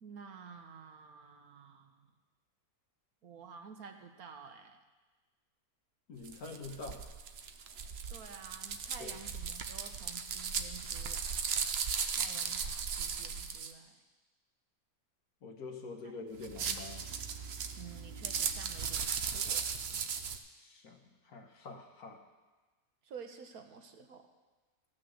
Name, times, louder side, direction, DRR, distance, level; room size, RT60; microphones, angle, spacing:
voice 1, 0.0-2.1 3.2-4.8 8.1-11.4 12.1-14.0 16.0-16.1 17.8-19.7 23.0-24.3, right 6 dB, 80° right, 5 dB, 1.5 m, -51 dB
voice 2, 6.1-7.1 9.0-9.1 15.4-17.1 20.5-22.2, left 3 dB, 75° left, 3 dB, 1.8 m, -46 dB
sound 1, 6.2-13.7 16.4-20.4, right 6 dB, 55° right, 0.8 m, -37 dB
14.5 x 6.0 x 7.8 m, 1.2 s
omnidirectional pair, 1.6 m